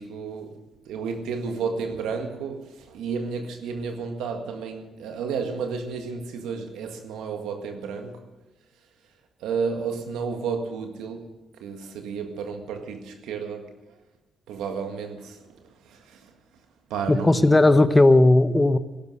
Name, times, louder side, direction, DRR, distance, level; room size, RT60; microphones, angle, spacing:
voice 1, 0.0-8.3 9.4-11.3 11.6-13.9 14.5-16.3 16.9-17.6, right 5 dB, 90° right, 1.8 m, -32 dB
voice 2, 17.1-18.8, left 2 dB, 20° left, 1.0 m, -16 dB
16.5 x 12.0 x 6.4 m
supercardioid pair, 60°, 0 cm